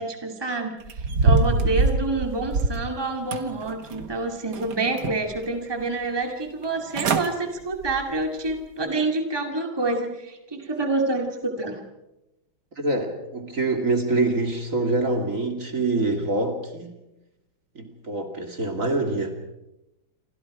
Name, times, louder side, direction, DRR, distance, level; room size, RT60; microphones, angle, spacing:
voice 1, 0.0-11.8, right 2 dB, 10° right, 3 dB, 2.4 m, -27 dB
sound 1, 0.9-2.9 3.3-4.1 4.5-5.4 5.8-5.9 6.6-6.7 6.9-7.3 7.7-8.0 8.5-8.6, right 3 dB, 55° right, 2.1 m, -24 dB
voice 2, 12.8-17.0 17.8-19.3, right 2 dB, 40° right, 4 dB, 2.8 m, -25 dB
29.0 x 25.0 x 5.0 m, 0.94 s
omnidirectional pair, 2.2 m